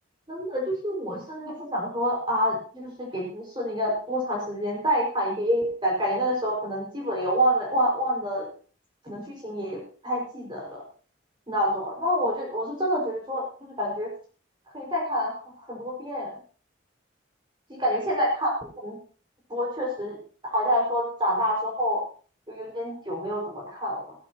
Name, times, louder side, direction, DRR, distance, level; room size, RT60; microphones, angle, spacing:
voice 1, 0.3-8.5 9.0-10.8 11.5-14.1 14.7-16.3 17.7-19.0 19.5-22.0 22.5-24.1, equal, 25° right, -2 dB, 5.0 m, -27 dB
16.5 x 15.5 x 2.9 m, 0.40 s
head